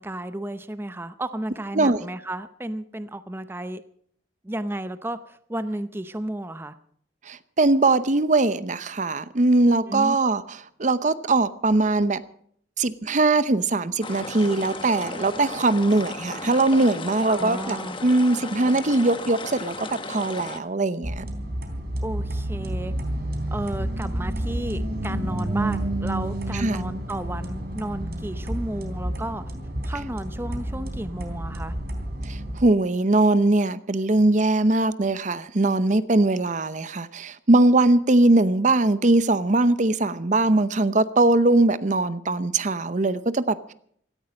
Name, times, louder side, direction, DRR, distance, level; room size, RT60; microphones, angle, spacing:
voice 1, 0.0-3.8 4.4-6.7 9.9-10.2 17.3-18.0 22.0-22.9 23.5-29.4 29.8-31.8, right 1 dB, 15° right, 12 dB, 0.6 m, -33 dB
voice 2, 1.8-2.1 7.3-10.4 10.8-12.2 12.8-21.3 26.5-26.8 32.3-43.7, right 2 dB, 45° right, 14 dB, 0.8 m, -21 dB
sound 1, 14.0-20.6, left 3 dB, 30° left, 1.3 m, -35 dB
sound 2, 21.0-32.6, right 1 dB, 60° right, 3.6 m, -30 dB
17.0 x 14.0 x 5.2 m, 0.63 s
head